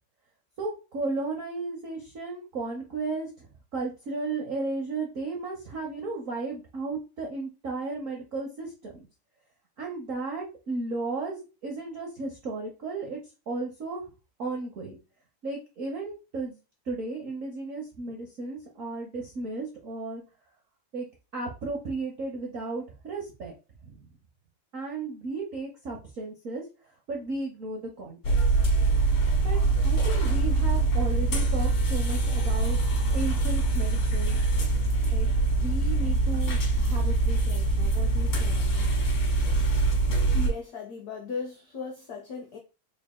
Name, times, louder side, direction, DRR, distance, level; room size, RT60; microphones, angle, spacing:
voice 1, 0.6-9.0 9.8-13.2 13.5-14.1 14.4-15.0 15.4-16.6 16.9-20.2 20.9-21.1 21.3-23.5 23.8-24.1 24.7-28.4 29.4-29.6 29.8-32.8 33.1-34.4 35.1-38.9, right 3 dB, 85° right, 0.7 m, -34 dB
sound 1, 28.2-40.5, right 3 dB, 60° left, 1.7 m, -24 dB
voice 2, 40.3-42.6, left 5 dB, 90° left, 0.8 m, -36 dB
3.9 x 3.6 x 2.2 m
omnidirectional pair, 2.4 m